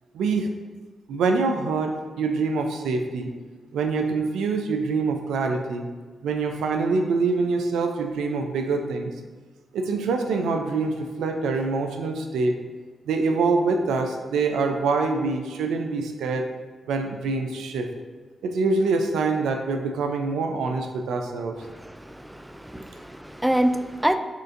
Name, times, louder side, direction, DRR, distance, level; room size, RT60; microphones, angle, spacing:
voice 1, 0.1-0.5 1.1-3.3 3.7-5.9 6.2-9.1 9.7-12.6 13.1-16.5 16.9-17.9 18.4-21.5, right 4 dB, 85° right, 5 dB, 0.4 m, -25 dB
voice 2, 21.7-24.2, right 1 dB, 10° right, 8 dB, 0.3 m, -26 dB
6.4 x 2.5 x 2.5 m, 1.4 s
supercardioid pair, 45°, 0 cm